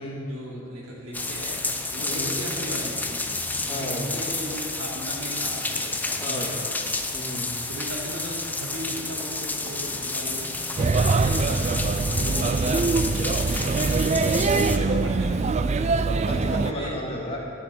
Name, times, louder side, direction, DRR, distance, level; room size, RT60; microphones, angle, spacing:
voice 1, 0.3-1.6 1.9-3.1 3.6-6.8 7.7-13.9 14.2-15.9 16.2-16.9, right 1 dB, 75° right, -3 dB, 2.8 m, -37 dB
sound 1, 1.1-14.8, left 3 dB, 10° left, 0.6 m, -30 dB
voice 2, 2.0-2.4 3.7-4.1 6.2-6.6 7.1-7.5 12.4-12.7 14.5-15.0 16.2-17.4, equal, 25° left, -2 dB, 2.0 m, -34 dB
Male speech man speaking / Child speech kid speaking / Chatter, 10.8-16.7, right 4 dB, 30° right, 0.3 m, -23 dB
12.5 x 7.1 x 7.8 m, 2.4 s
head